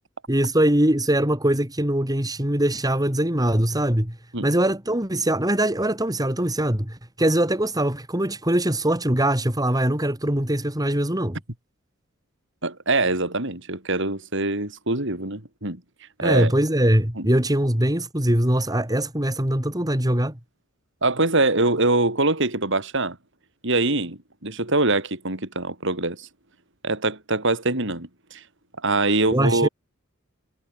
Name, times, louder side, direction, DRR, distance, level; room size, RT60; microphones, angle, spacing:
voice 1, 0.3-4.2 4.4-11.4 16.2-20.4 29.3-29.7, right 1 dB, 20° right, 3.4 m, -22 dB
voice 2, 12.6-15.8 16.2-16.5 17.2-17.3 21.0-23.2 23.6-26.3 26.8-28.4 28.8-29.7, right 2 dB, 65° right, 5.6 m, -23 dB
head